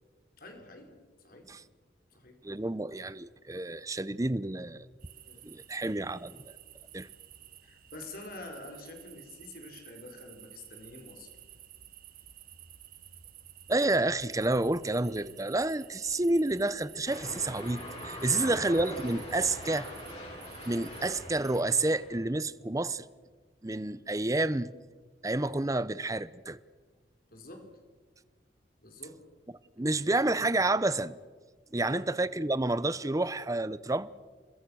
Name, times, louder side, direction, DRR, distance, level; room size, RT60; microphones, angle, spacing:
voice 1, 0.4-1.0 1.2-1.5 2.1-2.4 5.3-5.5 7.6-11.3 18.2-18.6 27.3-27.7 28.8-29.2 31.8-32.0, left 2 dB, 50° left, 4.5 m, -47 dB
voice 2, 2.4-4.9 5.4-6.4 6.9-7.1 13.7-19.9 20.7-23.1 23.6-24.7 25.2-26.6 29.8-31.2 31.7-34.1, right 2 dB, 20° right, 0.7 m, -29 dB
sound 1, 5.0-21.6, right 11 dB, 50° right, 1.3 m, -52 dB
sound 2, 17.1-22.2, left 1 dB, 35° left, 7.4 m, -42 dB
29.0 x 21.5 x 6.3 m
head